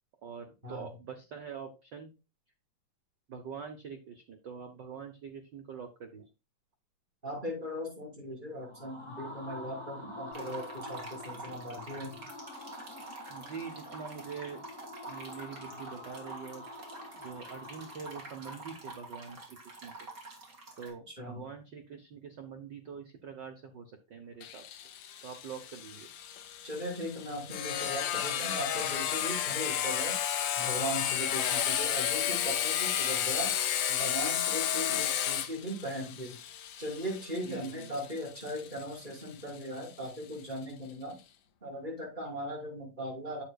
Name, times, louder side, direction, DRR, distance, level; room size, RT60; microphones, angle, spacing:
voice 1, 0.2-2.1 3.3-6.3 13.3-14.6 15.1-16.6 17.1-19.4 19.7-19.9 20.8-24.8 25.2-26.1 34.9-35.0 37.4-37.9, right 6 dB, 75° right, 5 dB, 1.0 m, -44 dB
voice 2, 7.2-12.3 21.1-21.5 26.6-30.1 30.6-33.5 33.9-36.4 36.8-41.2 41.6-43.4, equal, 15° right, -4 dB, 5.4 m, -38 dB
sound 1, 8.5-19.4, left 1 dB, 15° left, 1.3 m, -47 dB
sound 2, 10.3-20.9, right 3 dB, 35° right, 2.7 m, -47 dB
Sawing, 24.4-39.8, left 10 dB, 85° left, 2.5 m, -32 dB
9.8 x 7.7 x 2.3 m, 0.29 s
omnidirectional pair, 3.6 m